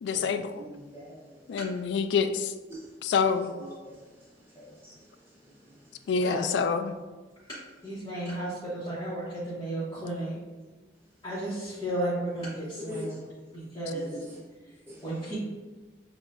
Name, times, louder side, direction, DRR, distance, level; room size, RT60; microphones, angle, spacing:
voice 1, 0.0-0.6 1.5-2.5 3.0-3.5 6.1-6.9, left 5 dB, 85° left, 10 dB, 0.3 m, -27 dB
voice 2, 0.6-1.4 3.8-4.0 4.5-5.0 12.9-13.2 13.9-14.4 14.9-15.0, left 1 dB, 15° right, -8 dB, 0.7 m, -42 dB
voice 3, 7.8-10.4 11.2-13.2 13.5-14.2 15.0-15.4, right 1 dB, 20° left, -13 dB, 1.0 m, -33 dB
6.5 x 2.4 x 2.5 m, 1.3 s
head